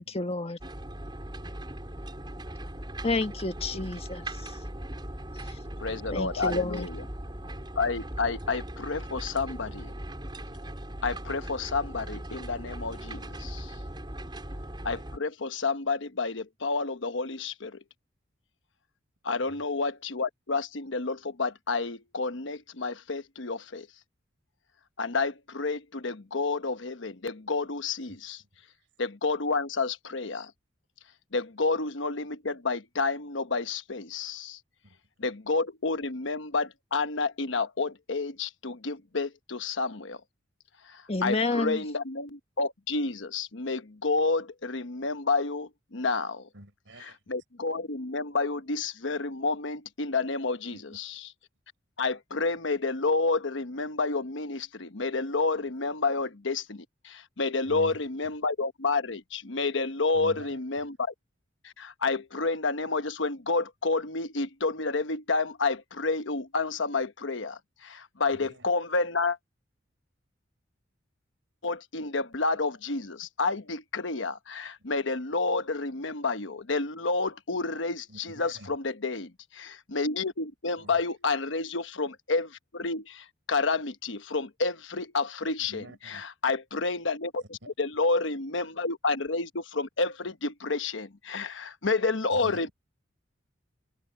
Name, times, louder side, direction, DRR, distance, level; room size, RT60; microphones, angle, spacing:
voice 1, 0.0-0.6 3.0-4.6 5.5-5.6 6.1-6.9 41.1-41.8, left 2 dB, 30° left, 1.4 m, -30 dB
sound 1, 0.6-15.2, right 1 dB, 25° right, 4.7 m, -39 dB
voice 2, 5.8-7.0 7.8-9.9 11.0-13.7 14.8-17.8 19.2-23.9 25.0-28.4 29.0-30.5 31.3-34.6 35.2-40.2 40.9-46.5 47.3-51.2 52.0-61.1 61.6-69.4 71.6-85.8 86.4-92.7, left 3 dB, 70° left, 1.2 m, -30 dB
voice 3, 19.3-19.6 28.1-28.5 28.8-28.9 34.8-35.0 46.5-47.4 50.7-51.2 56.0-56.1 57.6-58.3 60.1-60.6 68.3-68.7 78.1-78.8 80.8-81.0 85.6-86.2 87.4-87.7 92.3-92.7, right 1 dB, 75° right, 5.2 m, -49 dB
head